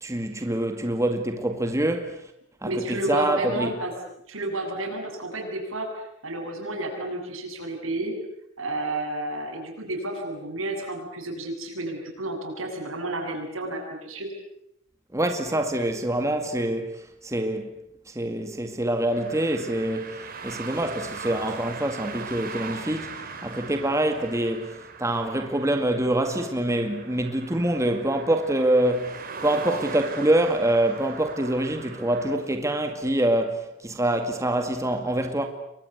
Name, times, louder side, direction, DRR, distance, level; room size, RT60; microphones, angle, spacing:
voice 1, 0.0-2.2 2.6-3.7 15.1-17.7 18.1-29.1 29.4-35.5, right 1 dB, 15° right, 2.1 m, -25 dB
voice 2, 2.6-3.9 4.3-8.1 8.6-14.3, right 1 dB, 75° right, 8.0 m, -31 dB
sound 1, 19.1-32.4, right 4 dB, 45° right, 4.6 m, -40 dB
29.5 x 23.0 x 8.2 m
head